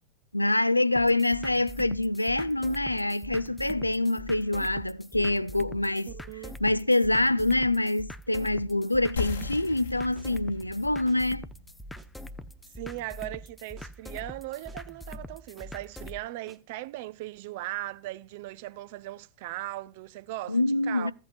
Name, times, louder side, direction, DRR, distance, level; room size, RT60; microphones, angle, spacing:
voice 1, 0.3-6.1 6.6-11.5 20.5-21.1, left 2 dB, 85° left, 0.4 m, -25 dB
sound 1, 1.0-16.2, left 1 dB, 5° left, 0.5 m, -44 dB
voice 2, 6.1-6.6 12.8-21.1, right 16 dB, 50° right, 0.5 m, -38 dB
sound 2, 9.2-14.3, left 6 dB, 70° left, 1.3 m, -40 dB
sound 3, 9.7-9.9 10.2-10.3 10.6-10.8 11.1-11.2 11.5-11.7 12.0-12.1 12.4-12.6 12.9-13.0 13.3-13.5 13.8-13.9 14.2-14.4 14.7-14.8 15.1-15.7 16.0-16.2 16.5-16.6, right 4 dB, 10° right, 1.3 m, -55 dB
15.0 x 8.2 x 2.5 m
figure-of-eight pair, 90°, 0 cm